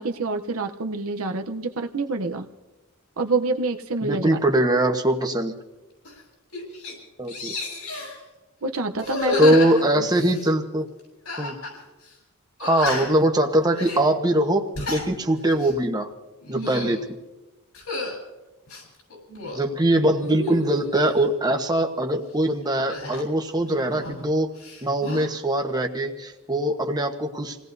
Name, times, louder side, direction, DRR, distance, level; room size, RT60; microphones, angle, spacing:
voice 1, 0.0-2.5 3.2-4.4 8.6-9.6 9.9-10.1 16.5-16.8, right 3 dB, 70° right, 6 dB, 0.8 m, -27 dB
voice 2, 4.0-5.5 7.2-7.5 9.4-10.9 11.4-11.5 12.6-16.1 16.5-17.0 19.5-24.5 24.8-27.6, right 1 dB, 20° right, 4 dB, 1.2 m, -22 dB
sound 1, 6.0-6.2 6.5-6.9 7.3-8.2 9.0-10.5 11.3-11.8 12.0-12.1 12.6-13.3 13.7-14.0 14.6-15.1 15.5-15.8 16.4-17.0 17.7-18.2 18.7-19.6 20.1-21.1 22.9-24.3 24.6-25.3, left 3 dB, 80° left, 7.4 m, -31 dB
28.5 x 18.0 x 2.7 m, 1.1 s
head